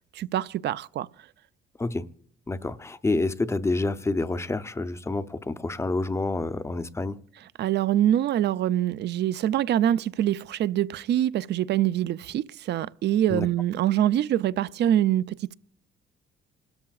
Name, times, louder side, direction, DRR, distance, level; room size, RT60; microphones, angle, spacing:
voice 1, 0.2-1.1 7.6-15.5, right 11 dB, 55° right, 0.4 m, -24 dB
voice 2, 2.5-7.2 13.3-13.5, left 2 dB, 15° left, 0.6 m, -28 dB
27.5 x 13.5 x 2.4 m
cardioid pair, 120°, 21 cm